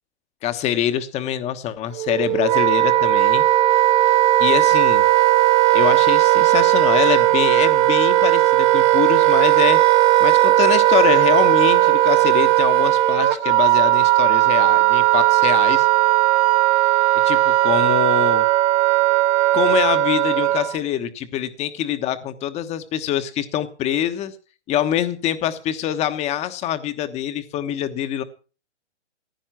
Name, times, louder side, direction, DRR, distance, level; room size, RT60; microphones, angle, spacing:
voice 1, 0.4-3.4 4.4-5.0 5.7-9.8 10.2-15.9 16.8-16.9 17.2-18.5 19.5-24.3 24.7-28.2, left 11 dB, 20° left, 11 dB, 1.2 m, -24 dB
Wind instrument woodwind instrument, 2.0-20.8, right 16 dB, 25° right, 1.1 m, -16 dB
15.5 x 10.5 x 6.0 m, 0.36 s
hypercardioid pair, 145°, 34 cm